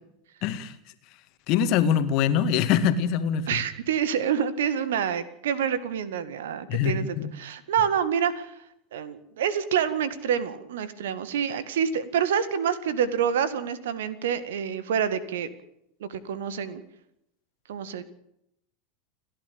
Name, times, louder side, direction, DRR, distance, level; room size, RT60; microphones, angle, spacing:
voice 1, 0.4-0.8 1.5-3.6 6.7-7.3, left 8 dB, 45° left, 11 dB, 1.9 m, -24 dB
voice 2, 3.5-8.5 8.9-15.5 16.0-16.8 17.7-18.0, right 8 dB, 65° right, 15 dB, 2.0 m, -27 dB
30.0 x 11.5 x 8.8 m, 0.77 s
figure-of-eight pair, 80°, 0 cm